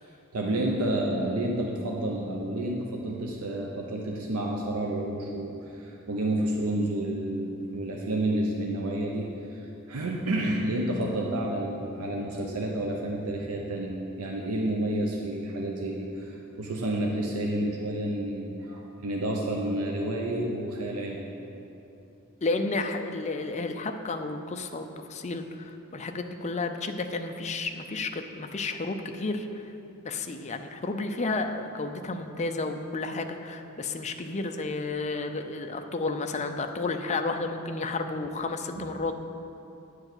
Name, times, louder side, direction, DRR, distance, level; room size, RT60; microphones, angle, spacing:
voice 1, 0.3-21.2 38.7-38.8, right 1 dB, 80° right, 0 dB, 0.8 m, -30 dB
voice 2, 22.4-29.7 30.0-39.1, left 3 dB, 30° left, 6 dB, 0.5 m, -32 dB
9.6 x 4.7 x 7.8 m, 2.9 s
head